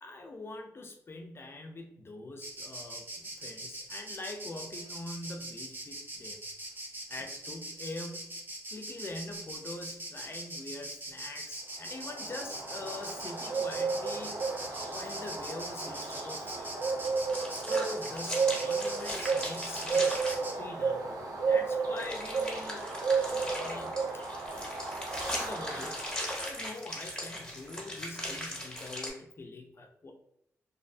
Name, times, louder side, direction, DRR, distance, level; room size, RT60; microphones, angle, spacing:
voice 1, 0.0-6.4 7.1-8.4 8.7-16.7 17.5-22.8 23.2-24.8 25.3-30.1, left 2 dB, 40° left, 3 dB, 0.5 m, -44 dB
Insect, 2.4-20.6, right 1 dB, 35° right, 0.7 m, -42 dB
Bird, 11.9-26.6, right 5 dB, 85° right, 0.5 m, -33 dB
sound 1, 17.0-20.4 22.0-29.1, left 1 dB, 15° left, 1.0 m, -39 dB
2.7 x 2.1 x 2.6 m, 0.75 s
cardioid pair, 60°, 6 cm